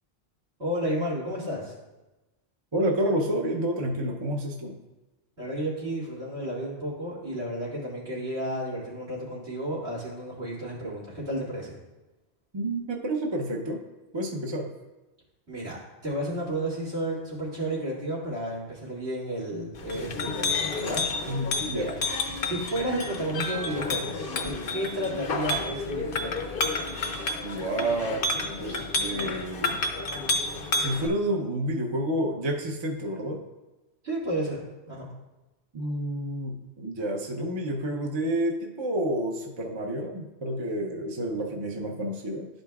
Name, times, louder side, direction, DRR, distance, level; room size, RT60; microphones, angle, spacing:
voice 1, 0.6-1.7 5.4-11.8 15.5-15.8 16.0-21.9 22.4-26.5 34.0-35.0, right 1 dB, 75° right, -7 dB, 2.7 m, -32 dB
voice 2, 2.7-4.8 12.5-13.8 14.1-14.7 21.3-21.9 27.4-29.8 30.7-33.4 35.7-42.5, right 1 dB, 30° right, 1 dB, 0.6 m, -29 dB
Chink clink, 19.7-31.1, left 3 dB, 60° left, 0.8 m, -30 dB
12.0 x 5.2 x 2.3 m, 1.1 s
omnidirectional pair, 1.1 m